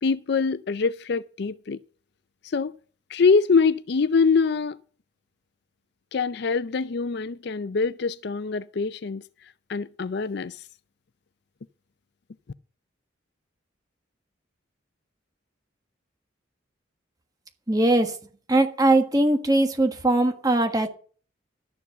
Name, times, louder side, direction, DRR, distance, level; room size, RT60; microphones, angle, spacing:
voice 1, 0.0-1.8 2.4-2.7 3.1-4.8 6.1-9.2 9.7-10.6, left 5 dB, 60° left, 0.4 m, -24 dB
voice 2, 17.7-18.1 18.5-20.9, right 2 dB, 20° right, 1.5 m, -20 dB
12.5 x 7.2 x 6.8 m
head